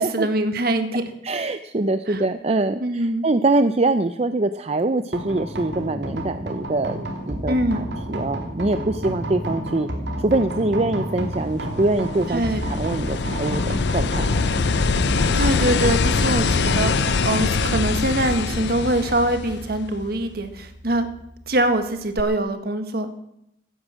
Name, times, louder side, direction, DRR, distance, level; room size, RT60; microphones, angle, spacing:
voice 1, 0.0-1.1 2.1-2.2 2.8-3.2 7.5-7.9 12.3-12.7 15.3-21.1 21.5-23.1, right 1 dB, 55° right, 8 dB, 1.6 m, -23 dB
voice 2, 1.2-9.9 10.2-14.7, right 2 dB, 35° right, 10 dB, 0.5 m, -24 dB
sound 1, 5.1-22.3, equal, 75° right, 3.0 m, -31 dB
sound 2, 11.6-20.0 22.2-22.3, left 5 dB, 65° left, 0.5 m, -23 dB
16.0 x 10.5 x 7.5 m, 0.80 s
head